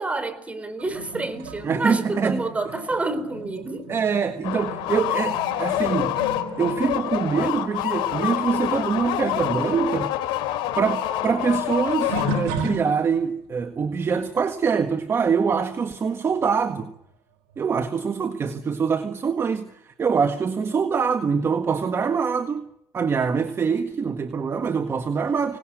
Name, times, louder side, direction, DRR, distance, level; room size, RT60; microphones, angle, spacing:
voice 1, 0.0-3.9, right 2 dB, 15° right, 4.1 m, -28 dB
sound 1, 0.8-8.8 9.0-13.4 14.0-14.3 16.6-16.7 17.5-17.6, right 3 dB, 85° right, 5.4 m, -36 dB
voice 2, 1.6-2.5 3.9-6.2 6.6-10.1 10.8-16.9 17.6-22.7 22.9-25.6, right 6 dB, 30° right, 1.7 m, -24 dB
sound 2, 4.4-12.8, left 13 dB, 75° left, 3.6 m, -27 dB
25.5 x 19.0 x 7.9 m
cardioid pair, 110°, 8 cm